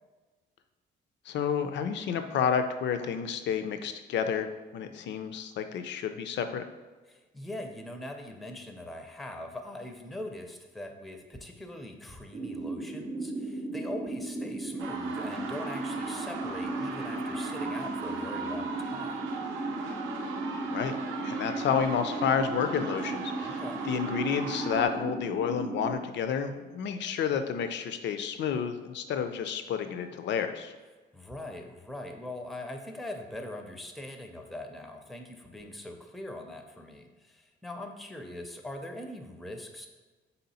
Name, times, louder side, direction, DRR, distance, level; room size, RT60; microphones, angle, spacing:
voice 1, 1.3-6.6 20.7-21.0 21.2-30.7, left 7 dB, 65° left, 8 dB, 0.4 m, -30 dB
voice 2, 7.1-19.3 23.4-23.9 31.1-39.9, left 1 dB, ahead, 4 dB, 0.4 m, -42 dB
sound 1, 12.3-25.9, right 2 dB, 35° right, 0.7 m, -36 dB
sound 2, 14.8-24.9, right 5 dB, 80° right, 0.5 m, -39 dB
3.7 x 2.8 x 4.0 m, 1.3 s
cardioid pair, 90°, 20 cm